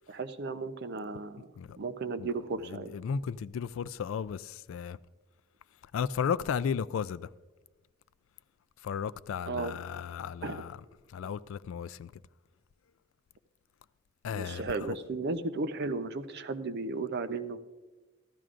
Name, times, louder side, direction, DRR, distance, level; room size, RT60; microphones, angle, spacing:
voice 1, 0.1-1.5 1.8-2.9 9.5-9.8 10.4-10.6 11.2-11.3 14.3-17.6, right 3 dB, 55° right, 0.6 m, -35 dB
voice 2, 2.7-5.0 5.9-7.3 8.8-10.8 11.1-12.1 14.2-15.0, left 7 dB, 75° left, 0.3 m, -34 dB
15.0 x 12.5 x 2.5 m
head